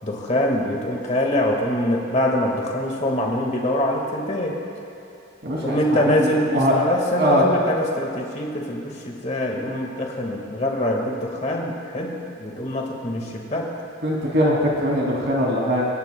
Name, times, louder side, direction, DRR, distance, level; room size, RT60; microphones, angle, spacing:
voice 1, 0.0-4.6 5.6-13.7, left 1 dB, 30° left, 0 dB, 1.7 m, -24 dB
voice 2, 5.4-6.7 7.2-7.4 14.0-15.8, equal, 50° right, -3 dB, 2.6 m, -21 dB
26.5 x 12.0 x 2.2 m, 2.8 s
head